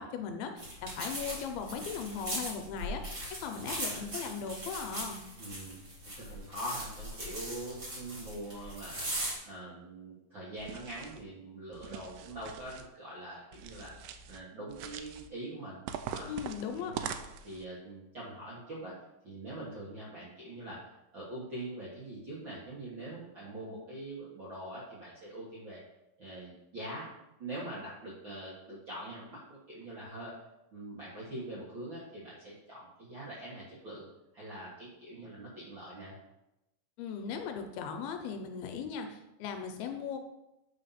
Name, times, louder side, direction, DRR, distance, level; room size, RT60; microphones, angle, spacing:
voice 1, 0.0-3.0 3.4-5.2 16.3-16.9 37.0-40.2, left 6 dB, 80° left, 5 dB, 2.4 m, -38 dB
sound 1, 0.6-9.3, right 1 dB, 30° right, 1.8 m, -39 dB
voice 2, 3.6-4.0 5.4-5.8 6.2-9.1 9.4-13.9 14.3-15.8 16.1-16.3 16.7-17.1 17.4-19.0 19.2-25.8 26.2-30.3 30.7-34.1 34.3-36.1, right 1 dB, 60° right, -7 dB, 1.3 m, -43 dB
sound 2, 10.6-11.2 11.7-12.9 13.5-14.4 14.7-15.3 15.9-17.6, right 8 dB, 80° right, 2.3 m, -42 dB
8.0 x 4.1 x 5.6 m, 0.92 s
omnidirectional pair, 4.6 m